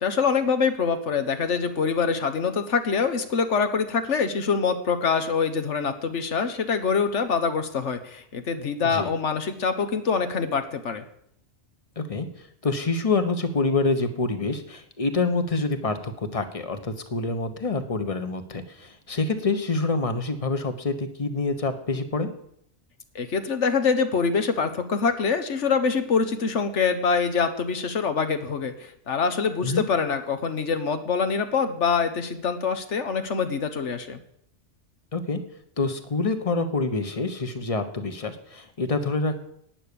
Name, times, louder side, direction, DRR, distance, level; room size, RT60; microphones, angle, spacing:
voice 1, 0.0-11.0 23.1-34.2, left 5 dB, 75° left, 9 dB, 1.5 m, -25 dB
voice 2, 12.0-22.3 29.6-29.9 35.1-35.4 35.8-39.4, left 3 dB, 30° left, 9 dB, 1.2 m, -27 dB
12.0 x 9.5 x 7.0 m, 0.72 s
omnidirectional pair, 1.2 m